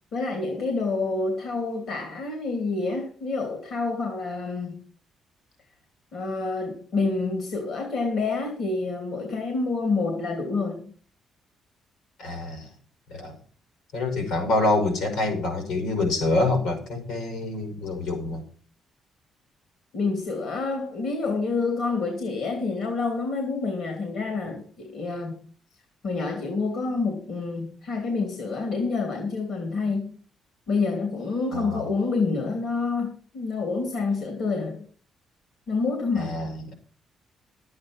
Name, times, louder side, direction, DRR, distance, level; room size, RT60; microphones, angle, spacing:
voice 1, 0.1-4.8 6.1-10.9 19.9-25.5 26.0-30.2 30.7-34.8 35.7-36.4, left 3 dB, 70° left, 4 dB, 2.8 m, -28 dB
voice 2, 12.2-12.7 13.1-13.3 13.9-18.4 31.5-31.8 36.2-36.7, left 2 dB, 85° left, 5 dB, 5.5 m, -26 dB
11.5 x 8.7 x 6.1 m, 0.43 s
cardioid pair, 90°, 0 cm